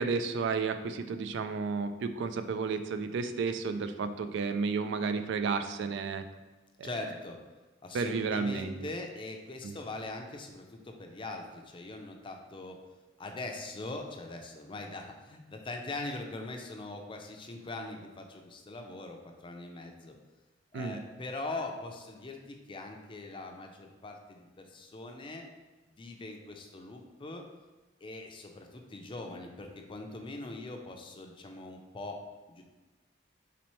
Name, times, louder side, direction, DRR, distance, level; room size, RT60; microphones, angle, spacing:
voice 1, 0.0-6.3 6.8-6.9 7.9-8.9 9.6-9.7 20.7-21.0, right 4 dB, 65° right, 9 dB, 0.3 m, -32 dB
voice 2, 6.8-7.4 7.8-12.8 13.2-20.1 20.7-25.4 26.0-27.4 28.0-32.2 32.5-32.6, left 2 dB, 25° left, 3 dB, 0.5 m, -41 dB
4.2 x 4.1 x 3.1 m, 1.2 s
head